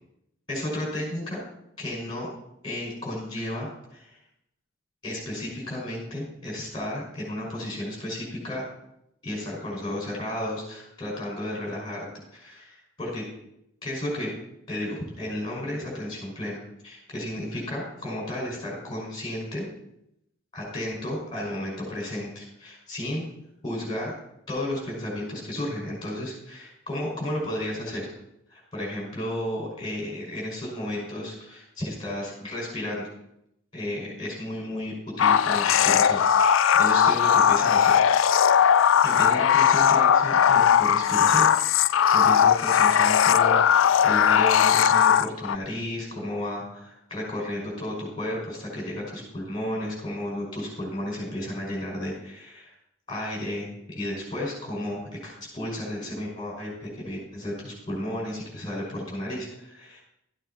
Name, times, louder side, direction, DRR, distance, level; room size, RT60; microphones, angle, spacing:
voice 1, 0.5-1.4 1.8-2.3 2.6-4.2 5.0-8.7 9.2-12.1 12.3-13.2 13.8-14.3 14.7-19.7 20.5-23.3 23.6-24.1 24.5-28.1 28.5-33.1 33.7-38.0 39.0-52.7 53.1-60.0, left 1 dB, 20° left, -3 dB, 5.6 m, -33 dB
alien vocal matrix, 35.2-45.6, left 8 dB, 70° left, 0.4 m, -19 dB
13.5 x 8.9 x 4.3 m, 0.79 s
head